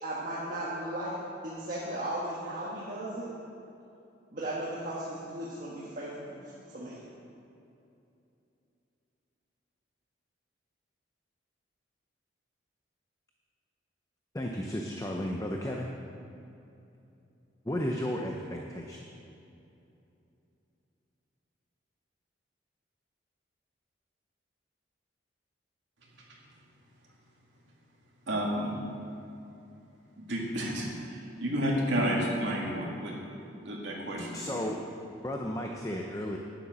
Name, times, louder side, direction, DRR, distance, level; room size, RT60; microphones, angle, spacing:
voice 1, 0.0-1.1 1.4-3.3 4.3-6.4 6.7-7.0, right 1 dB, 45° right, -7 dB, 1.5 m, -36 dB
voice 2, 14.3-15.9 17.6-19.0 34.3-34.8 35.1-36.4, left 1 dB, 15° left, 1 dB, 0.6 m, -34 dB
voice 3, 28.3-28.7 30.2-34.5, equal, 75° right, -3 dB, 2.2 m, -31 dB
9.9 x 8.3 x 6.1 m, 2.8 s
head